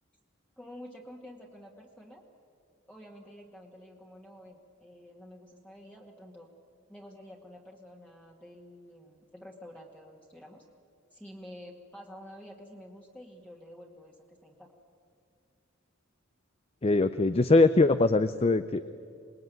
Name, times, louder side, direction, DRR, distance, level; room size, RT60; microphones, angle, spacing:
voice 1, 0.6-2.2 2.8-6.5 6.9-10.7 11.1-14.7, equal, 5° left, -1 dB, 1.8 m, -49 dB
voice 2, 16.8-18.8, left 3 dB, 30° left, 12 dB, 0.6 m, -22 dB
27.0 x 20.0 x 9.3 m, 2.3 s
head